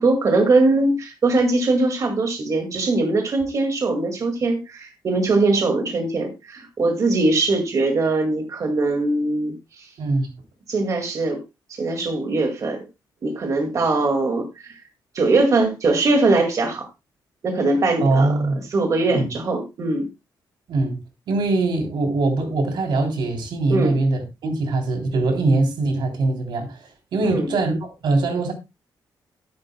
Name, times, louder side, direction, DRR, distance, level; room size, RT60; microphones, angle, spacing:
voice 1, 0.0-9.9 10.7-11.4 11.7-12.8 13.2-14.8 15.1-16.9 17.4-18.3 18.7-20.1 23.7-24.0 27.3-27.5, right 2 dB, 45° right, 2.0 m, -21 dB
voice 2, 10.0-10.3 18.0-18.6 19.1-19.3 20.7-21.0 21.3-26.8 27.1-27.8 28.0-28.5, right 2 dB, 85° right, 3.2 m, -22 dB
13.0 x 10.5 x 2.2 m
wide cardioid pair, 155°, 8 cm